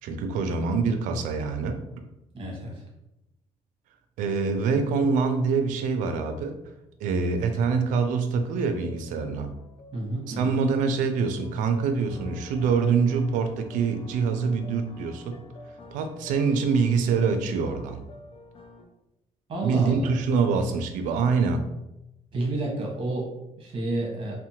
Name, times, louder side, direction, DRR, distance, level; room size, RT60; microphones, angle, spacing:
voice 1, 0.0-1.8 4.2-6.6 7.0-9.5 10.3-15.4 15.9-18.0 19.6-21.7, right 5 dB, 85° right, 8 dB, 0.4 m, -25 dB
voice 2, 2.3-2.8 9.9-10.6 19.5-20.2 22.3-24.3, right 2 dB, 40° right, -2 dB, 1.0 m, -30 dB
sound 1, 8.7-18.8, left 3 dB, 45° left, 0.5 m, -47 dB
2.7 x 2.1 x 2.8 m, 0.91 s
cardioid pair, 100°, 13 cm